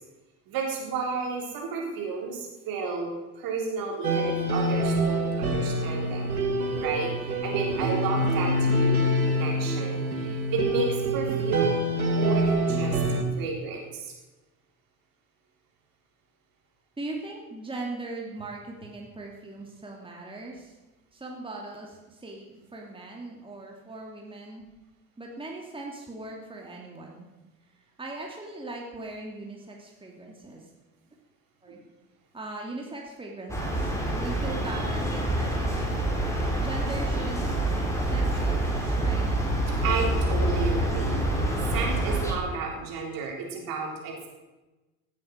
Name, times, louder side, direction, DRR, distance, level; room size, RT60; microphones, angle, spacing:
voice 1, 0.5-3.1 3.4-6.3 6.8-13.0 13.4-14.1 31.7-31.8 39.8-41.4 41.7-44.1, right 4 dB, 50° right, 0 dB, 3.9 m, -32 dB
sound 1, 4.0-13.2, right 1 dB, 85° right, 1.6 m, -26 dB
voice 2, 17.0-20.8 21.1-24.6 25.2-27.3 28.0-30.7 31.6-31.8 32.3-36.0 36.6-39.3, right 2 dB, 10° right, -1 dB, 2.5 m, -40 dB
sound 2, 33.5-42.3, right 1 dB, 5° left, 4.1 m, -26 dB
16.5 x 8.0 x 6.4 m, 1.1 s
figure-of-eight pair, 60°, 42 cm